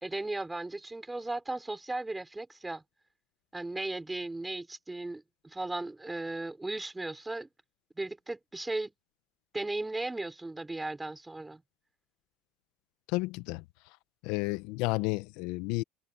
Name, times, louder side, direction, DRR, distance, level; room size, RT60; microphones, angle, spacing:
voice 1, 0.0-2.8 3.5-7.5 8.0-8.9 9.5-11.6, right 2 dB, 10° right, 4.2 m, -36 dB
voice 2, 13.1-13.6 14.2-15.8, left 22 dB, 70° left, 1.1 m, -31 dB
supercardioid pair, 90°, 0 cm